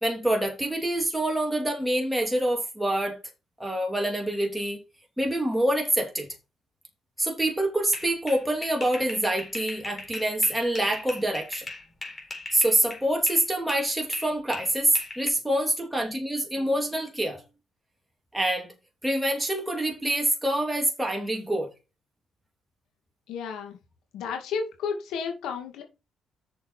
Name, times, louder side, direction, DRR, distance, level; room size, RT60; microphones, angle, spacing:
voice 1, 0.0-3.2 3.6-4.8 5.2-6.3 7.2-11.7 12.5-17.4 18.3-18.7 19.0-21.7, right 1 dB, 5° right, 2.8 m, -26 dB
sound 1, 7.9-13.4 13.7-15.3, left 2 dB, 25° left, 3.9 m, -39 dB
voice 2, 23.3-23.8 24.1-25.8, left 6 dB, 85° left, 2.4 m, -32 dB
8.0 x 6.8 x 4.6 m
cardioid pair, 90°, 0 cm